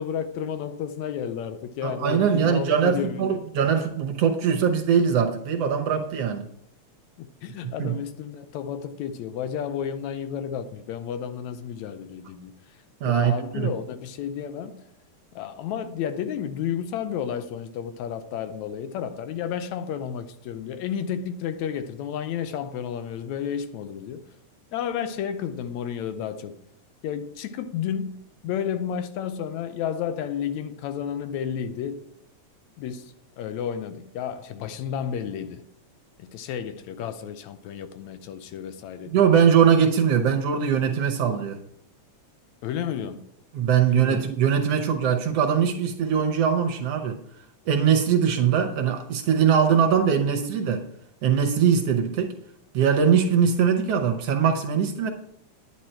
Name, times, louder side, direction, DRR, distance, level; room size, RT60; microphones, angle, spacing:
voice 1, 0.0-3.4 7.2-14.9 15.3-24.4 24.7-26.6 27.0-32.1 32.8-35.7 36.2-39.3 42.6-43.2 43.9-44.3, left 8 dB, 75° left, 1.9 m, -32 dB
voice 2, 1.8-6.5 7.8-7.9 13.0-13.7 39.1-41.6 43.5-47.2 47.7-50.8 51.2-52.4 52.7-55.1, right 7 dB, 65° right, 1.7 m, -21 dB
10.5 x 9.5 x 4.4 m
omnidirectional pair, 3.4 m